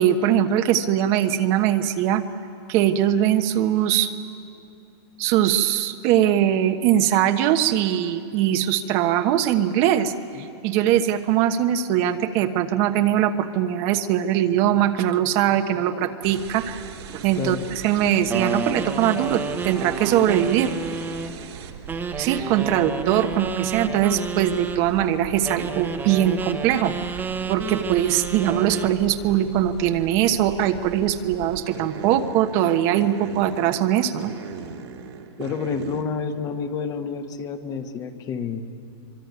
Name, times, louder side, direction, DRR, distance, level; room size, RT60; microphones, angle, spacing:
voice 1, 0.0-2.2 2.7-4.1 5.2-10.1 10.4-16.8 17.1-20.7 22.2-26.9 27.5-34.3, right 11 dB, 40° right, 7 dB, 1.2 m, -21 dB
sound 1, 16.2-36.0, right 8 dB, 70° right, 3.0 m, -39 dB
sound 2, 18.3-21.4 21.9-24.8 25.4-29.0, right 5 dB, 15° right, 1.2 m, -30 dB
voice 2, 35.4-38.6, left 6 dB, 25° left, 6 dB, 1.4 m, -29 dB
25.0 x 23.5 x 9.5 m, 2.7 s
hypercardioid pair, 150°, 14 cm